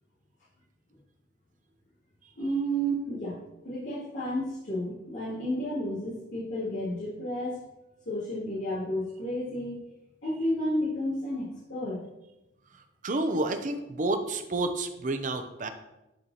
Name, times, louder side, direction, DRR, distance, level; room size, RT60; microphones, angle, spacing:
voice 1, 2.4-3.4 3.6-7.6 8.0-9.8 10.2-12.0, equal, 85° left, -14 dB, 2.6 m, -31 dB
voice 2, 13.0-15.7, right 2 dB, 45° right, 8 dB, 0.6 m, -29 dB
10.5 x 4.2 x 2.9 m, 0.95 s
head